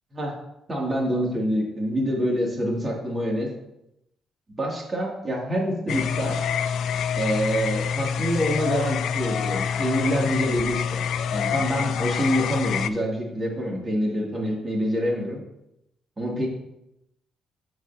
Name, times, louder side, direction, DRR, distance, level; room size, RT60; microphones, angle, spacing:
voice 1, 0.7-3.5 4.6-6.4 7.2-11.0 11.3-15.4 16.2-16.5, equal, 30° right, -3 dB, 3.0 m, -26 dB
sound 1, 5.9-12.9, left 7 dB, 70° left, 0.4 m, -26 dB
13.5 x 4.9 x 3.0 m, 0.86 s
cardioid pair, 90°, 0 cm